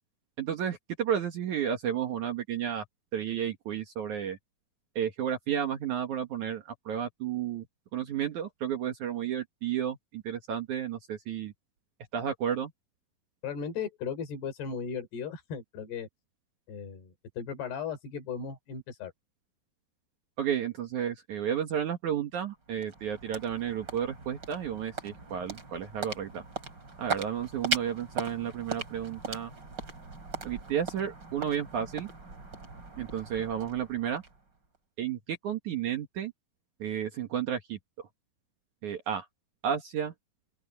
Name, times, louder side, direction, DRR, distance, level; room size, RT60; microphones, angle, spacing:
voice 1, 0.4-2.8 3.1-4.4 5.0-7.6 7.9-11.5 12.1-12.7 20.4-26.4 27.0-29.5 30.4-32.1 33.0-34.2 35.0-36.3 36.8-37.8 38.8-39.3 39.6-40.1, right 9 dB, 60° right, 2.5 m, -32 dB
voice 2, 13.4-16.1 16.7-19.1, left 6 dB, 80° left, 5.8 m, -36 dB
sound 1, 22.3-34.8, right 4 dB, 25° right, 4.6 m, -39 dB
open air
omnidirectional pair, 4.6 m